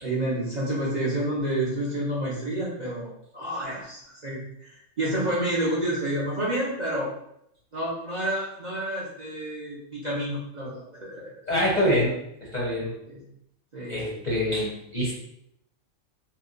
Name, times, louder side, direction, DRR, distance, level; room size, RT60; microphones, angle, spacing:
voice 1, 0.0-7.1 7.7-11.3 13.1-13.3 13.7-14.2, right 1 dB, 45° right, -6 dB, 0.6 m, -29 dB
voice 2, 11.5-12.2 12.5-12.9 13.9-15.1, equal, 40° left, -5 dB, 0.7 m, -25 dB
2.9 x 2.2 x 3.7 m, 0.77 s
omnidirectional pair, 1.5 m